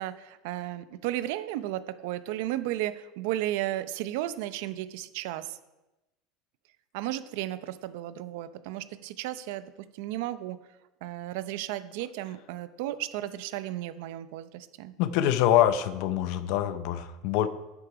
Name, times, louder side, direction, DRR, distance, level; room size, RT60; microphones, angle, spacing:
voice 1, 0.0-5.4 6.9-9.6 10.0-10.6 11.0-14.9, right 14 dB, 65° right, 13 dB, 0.6 m, -34 dB
voice 2, 15.0-17.5, left 11 dB, 55° left, 13 dB, 0.6 m, -25 dB
9.8 x 7.5 x 4.9 m, 1.0 s
cardioid pair, 165°, 0 cm